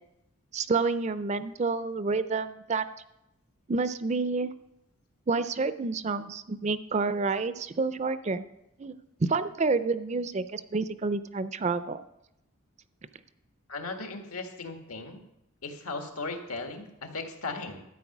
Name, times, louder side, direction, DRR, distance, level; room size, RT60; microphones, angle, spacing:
voice 1, 0.5-2.9 3.7-4.5 5.3-8.5 8.8-8.9 9.2-12.0, right 4 dB, 30° right, 13 dB, 0.4 m, -29 dB
voice 2, 13.7-15.2 15.6-17.8, left 3 dB, 90° left, 5 dB, 1.7 m, -37 dB
12.5 x 8.6 x 6.0 m, 0.86 s
head